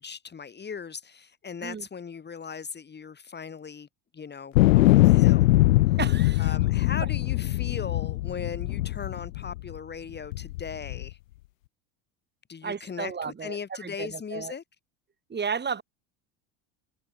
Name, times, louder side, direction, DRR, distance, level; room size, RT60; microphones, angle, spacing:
voice 1, 0.0-3.9 4.1-5.5 6.4-11.2 12.5-14.6, left 6 dB, 25° left, 3.9 m, -38 dB
sound 1, 4.6-9.8 10.3-11.1, left 18 dB, 90° left, 1.1 m, -22 dB
voice 2, 6.0-6.5 12.6-14.5 15.3-15.8, right 6 dB, 25° right, 7.5 m, -33 dB
supercardioid pair, 100°, 39 cm